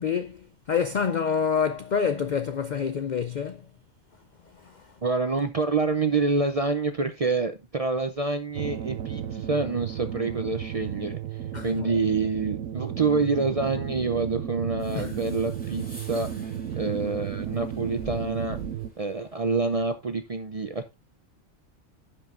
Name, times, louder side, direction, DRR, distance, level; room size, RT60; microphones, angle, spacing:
voice 1, 0.0-3.6 4.6-4.9 11.5-11.9 14.9-15.1, left 6 dB, 80° left, 0.4 m, -27 dB
voice 2, 5.0-11.2 11.6-16.3 16.7-18.6 19.0-20.9, right 4 dB, 45° right, 0.4 m, -27 dB
sound 1, 8.5-18.9, right 10 dB, 80° right, 1.2 m, -34 dB
sound 2, 14.8-19.9, right 1 dB, 5° left, 2.7 m, -46 dB
15.5 x 5.6 x 2.5 m
omnidirectional pair, 1.4 m